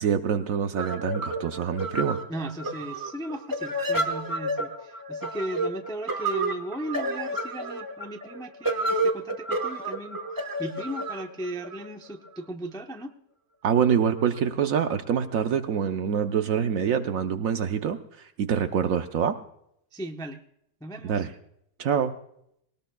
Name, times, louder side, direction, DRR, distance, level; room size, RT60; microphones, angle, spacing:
voice 1, 0.0-2.2 13.6-18.0 18.4-19.3 21.0-21.3 21.8-22.1, right 8 dB, 65° right, 8 dB, 1.0 m, -25 dB
sound 1, 0.8-12.4, right 1 dB, 15° right, 0.9 m, -30 dB
voice 2, 2.3-13.1 19.9-20.4 20.8-21.3, right 1 dB, 5° left, 5 dB, 0.4 m, -37 dB
19.5 x 19.0 x 2.3 m, 0.73 s
omnidirectional pair, 1.6 m